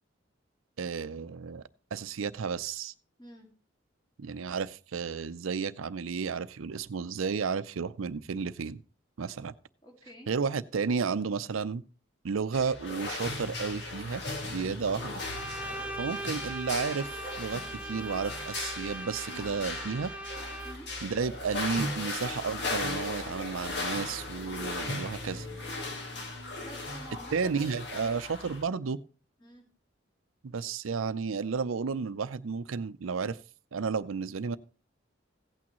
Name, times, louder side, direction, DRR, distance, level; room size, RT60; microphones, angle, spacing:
voice 1, 0.8-1.6 1.9-2.9 4.2-8.8 9.2-9.5 10.3-11.8 12.2-15.2 16.0-20.1 21.0-25.5 27.3-29.0 30.4-33.4 33.7-34.6, right 5 dB, 90° right, 0.5 m, -32 dB
voice 2, 9.8-10.3 14.6-14.9 15.6-15.9 20.6-20.9 26.4-28.2 29.4-29.6, equal, 20° left, 2.1 m, -49 dB
sound 1, 12.5-28.6, left 2 dB, 55° left, 1.8 m, -37 dB
Bowed string instrument, 15.2-21.0, right 1 dB, 5° right, 0.5 m, -40 dB
16.0 x 8.6 x 3.0 m
head